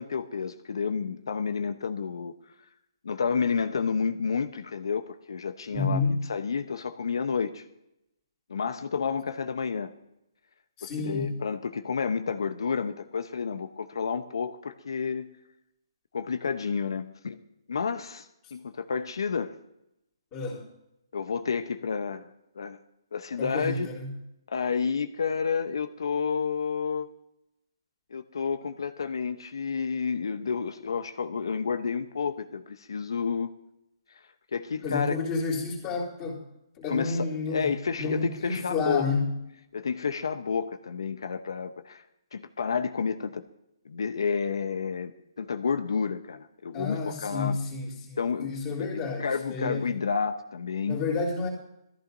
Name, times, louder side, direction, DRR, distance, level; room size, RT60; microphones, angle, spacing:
voice 1, 0.0-2.3 3.0-6.0 6.3-7.6 8.5-9.9 10.8-15.3 16.1-17.4 17.7-18.3 18.5-19.5 21.1-22.3 22.6-22.8 23.1-23.9 24.5-27.1 28.1-33.5 34.5-35.2 36.9-39.1 39.7-42.0 42.3-43.4 43.8-47.6 48.2-48.5 48.8-51.0, left 5 dB, 75° left, 9 dB, 0.8 m, -30 dB
voice 2, 5.7-6.2 10.8-11.4 20.3-20.7 23.4-24.1 34.8-36.4 36.8-37.7 38.0-39.3 46.7-50.0 50.9-51.5, left 4 dB, 20° left, -5 dB, 3.2 m, -30 dB
20.5 x 14.5 x 2.7 m, 0.85 s
hypercardioid pair, 165°, 2 cm